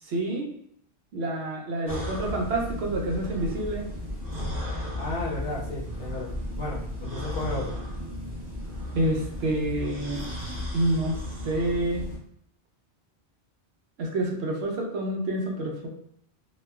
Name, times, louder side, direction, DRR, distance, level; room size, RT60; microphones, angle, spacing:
voice 1, 0.0-0.5 1.1-3.9 8.9-10.2 10.7-11.2 11.4-12.1 14.0-15.9, right 1 dB, 75° right, -1 dB, 0.8 m, -28 dB
sound 1, 1.9-12.2, left 1 dB, 20° right, 0.7 m, -34 dB
voice 2, 5.0-7.8, left 1 dB, 65° left, -2 dB, 0.8 m, -34 dB
3.0 x 2.1 x 2.2 m, 0.69 s
omnidirectional pair, 1.1 m